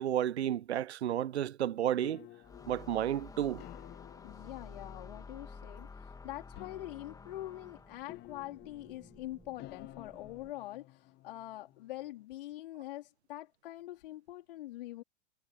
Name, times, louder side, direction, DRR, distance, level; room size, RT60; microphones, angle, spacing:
voice 1, 0.0-2.3 2.7-3.6, right 11 dB, 65° right, 0.6 m, -32 dB
sound 1, 1.7-12.2, left 17 dB, 30° left, 2.0 m, -54 dB
sound 2, 2.4-8.2, left 4 dB, 10° left, 2.7 m, -50 dB
voice 2, 4.2-15.0, left 15 dB, 50° left, 4.1 m, -44 dB
sound 3, 6.4-10.5, right 3 dB, 10° right, 5.3 m, -63 dB
figure-of-eight pair, 100°, 35 cm